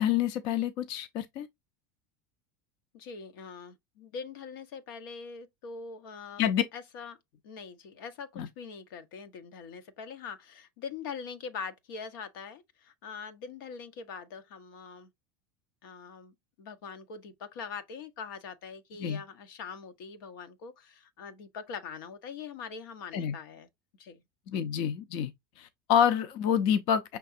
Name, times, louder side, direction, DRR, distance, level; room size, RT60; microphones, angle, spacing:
voice 1, 0.0-1.5 6.4-6.6 8.4-8.5 19.0-19.2 23.1-23.3 24.5-25.3 25.6-27.2, left 9 dB, 45° left, 0.5 m, -27 dB
voice 2, 2.9-6.5 6.7-7.2 7.4-15.1 15.8-23.7 24.0-24.2, left 6 dB, 80° left, 1.0 m, -43 dB
5.8 x 3.4 x 2.6 m
supercardioid pair, 165°, 11 cm